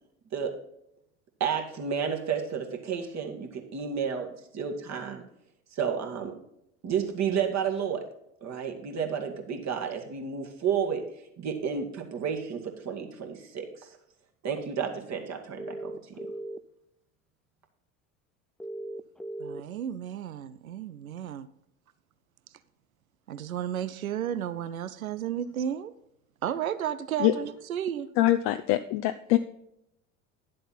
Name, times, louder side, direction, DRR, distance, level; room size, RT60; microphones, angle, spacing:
voice 1, 1.4-5.2 5.7-6.3 6.8-8.1 8.4-11.0 11.4-13.9 14.4-16.2, right 7 dB, 40° right, 3 dB, 2.1 m, -31 dB
sound 1, 15.6-16.6 18.6-19.6, right 1 dB, ahead, 0.3 m, -37 dB
voice 2, 19.4-21.5 23.3-25.9 26.4-28.1, right 9 dB, 90° right, 15 dB, 0.5 m, -33 dB
voice 3, 28.2-29.4, left 15 dB, 55° left, 9 dB, 0.6 m, -23 dB
11.0 x 7.6 x 4.2 m, 0.79 s
hypercardioid pair, 70°, 41 cm